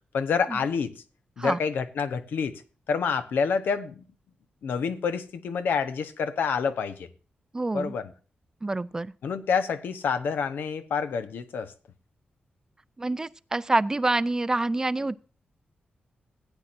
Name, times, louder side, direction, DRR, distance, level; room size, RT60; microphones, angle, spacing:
voice 1, 0.1-0.9 1.4-2.6 2.9-4.0 4.6-7.1 7.7-8.1 9.2-11.7, left 6 dB, 90° left, 1.0 m, -28 dB
voice 2, 7.5-7.9 8.6-9.1 13.0-15.3, right 2 dB, 20° right, 0.4 m, -27 dB
16.5 x 9.1 x 2.6 m
wide cardioid pair, 130°, 3 cm